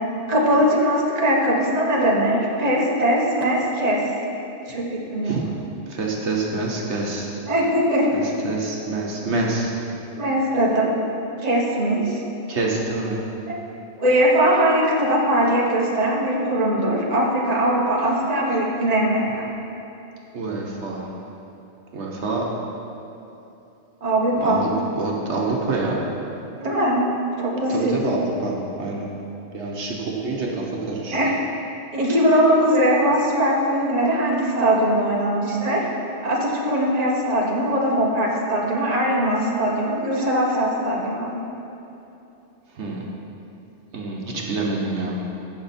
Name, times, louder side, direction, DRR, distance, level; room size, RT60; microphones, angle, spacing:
voice 1, 0.3-4.0 4.7-5.4 7.5-8.1 10.2-10.9 11.4-12.2 13.5-13.6 14.0-19.5 24.0-24.6 26.6-27.0 27.4-27.9 31.1-31.4 31.9-35.8 36.2-41.3, right 1 dB, 35° right, -3 dB, 1.5 m, -20 dB
voice 2, 5.9-7.3 8.1-9.7 12.5-13.2 20.3-21.2 21.9-22.5 24.4-26.0 27.7-29.1 29.5-31.2 42.8-43.0 43.9-45.2, right 3 dB, 75° right, -2 dB, 1.4 m, -26 dB
16.0 x 6.5 x 4.3 m, 2.9 s
omnidirectional pair, 1.2 m